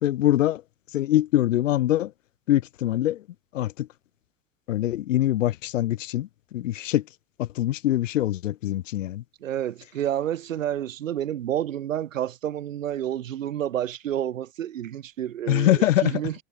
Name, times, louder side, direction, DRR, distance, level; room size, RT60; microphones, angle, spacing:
voice 1, 0.0-0.6 0.9-2.1 2.5-3.2 3.5-3.9 4.7-7.1 7.4-9.2 15.5-16.2, left 13 dB, 75° left, 2.0 m, -23 dB
voice 2, 9.4-16.3, right 11 dB, 80° right, 3.2 m, -29 dB
figure-of-eight pair, 70°, 39 cm